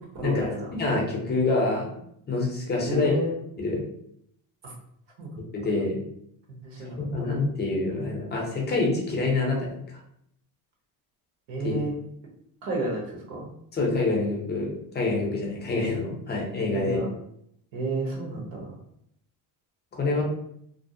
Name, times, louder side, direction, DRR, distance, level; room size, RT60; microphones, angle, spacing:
voice 1, 0.1-0.7 2.9-3.3 4.6-4.7 5.2-5.4 6.5-7.3 11.5-11.9 12.6-13.5 16.7-17.1 17.7-18.7, right 2 dB, 65° right, -1 dB, 0.9 m, -31 dB
voice 2, 0.8-1.9 2.3-3.2 3.6-3.8 5.5-6.0 6.8-10.0 11.6-11.7 13.7-17.0 19.9-20.2, left 3 dB, 25° left, -1 dB, 0.6 m, -26 dB
2.5 x 2.0 x 2.5 m, 0.72 s
cardioid pair, 130°, 46 cm